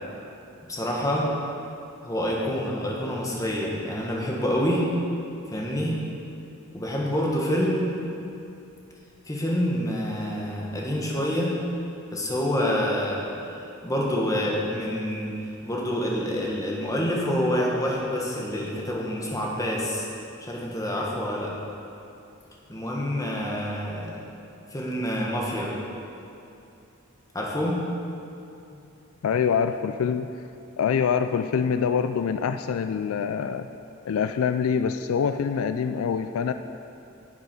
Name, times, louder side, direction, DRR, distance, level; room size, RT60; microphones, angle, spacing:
voice 1, 0.7-1.4 2.0-4.9 5.5-6.0 6.7-8.0 9.3-11.6 12.1-13.3 13.8-15.3 15.6-20.1 20.4-21.5 22.7-24.1 24.7-25.8 27.3-27.8 28.7-28.8, equal, 15° left, -3 dB, 1.4 m, -27 dB
voice 2, 29.2-30.3 30.8-33.7 34.0-36.5, left 6 dB, 75° left, 9 dB, 0.3 m, -25 dB
10.5 x 7.2 x 5.3 m, 2.7 s
head